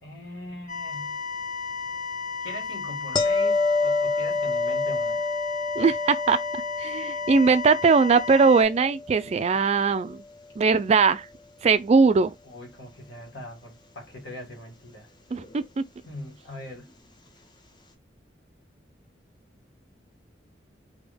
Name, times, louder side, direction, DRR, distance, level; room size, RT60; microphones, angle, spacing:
voice 1, 0.0-1.2 2.4-5.3 12.4-15.1 16.1-16.9, left 1 dB, 80° left, 1.9 m, -41 dB
sound 1, 0.7-8.6, left 5 dB, 50° left, 0.9 m, -34 dB
sound 2, 3.2-10.1 15.4-15.6, left 3 dB, 25° left, 0.6 m, -28 dB
voice 2, 5.8-6.4 6.8-10.2 10.6-11.3 11.6-12.3 15.3-15.8, right 4 dB, 35° right, 0.3 m, -20 dB
3.4 x 2.2 x 3.4 m
head